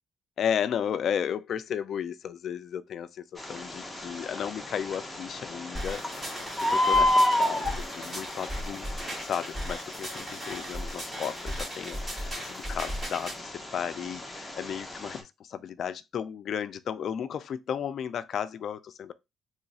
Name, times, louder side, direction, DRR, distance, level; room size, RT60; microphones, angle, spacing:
voice 1, 0.4-19.1, left 8 dB, 50° left, 0.3 m, -34 dB
Bird, 3.4-15.2, left 1 dB, 5° left, 0.8 m, -31 dB
sound 1, 5.7-13.4, equal, 30° right, 1.5 m, -37 dB
3.0 x 2.4 x 4.0 m
cardioid pair, 140°, 0 cm